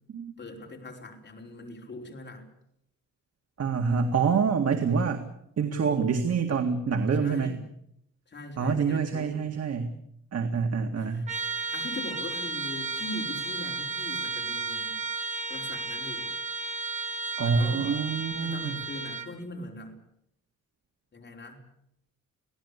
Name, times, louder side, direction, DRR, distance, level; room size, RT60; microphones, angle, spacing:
voice 1, 0.4-2.5 7.2-7.6 8.3-9.4 11.0-11.3 11.7-15.0 15.5-16.3 17.4-18.0 18.4-20.0 21.1-21.6, left 2 dB, 35° left, 1 dB, 5.1 m, -41 dB
voice 2, 3.6-5.2 5.6-7.5 8.6-9.9 10.3-11.3 11.6-11.7 17.4-18.8, right 5 dB, 50° right, 4 dB, 2.1 m, -26 dB
Trumpet, 11.3-19.3, right 3 dB, 20° right, 2.2 m, -33 dB
27.0 x 17.5 x 8.4 m, 0.76 s
wide cardioid pair, 165°, 31 cm